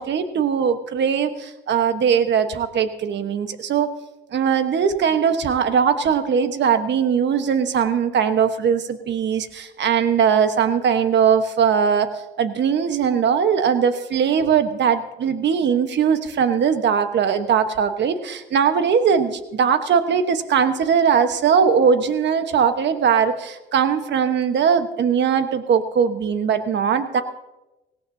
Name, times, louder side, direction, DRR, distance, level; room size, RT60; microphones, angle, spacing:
voice 1, 0.0-3.9 4.3-12.1 12.4-27.2, right 7 dB, 65° right, 9 dB, 1.2 m, -20 dB
18.0 x 17.0 x 2.8 m, 1.0 s
cardioid pair, 90°, 20 cm